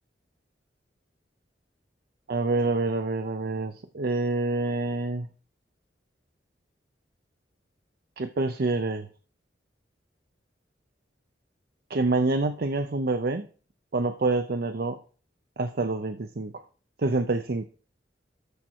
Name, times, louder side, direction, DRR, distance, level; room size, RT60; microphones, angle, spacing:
voice 1, 2.3-5.3 8.2-9.1 11.9-13.5 13.9-15.0 15.6-16.5 17.0-17.6, right 3 dB, 60° right, 8 dB, 0.7 m, -27 dB
13.5 x 4.6 x 5.7 m, 0.39 s
head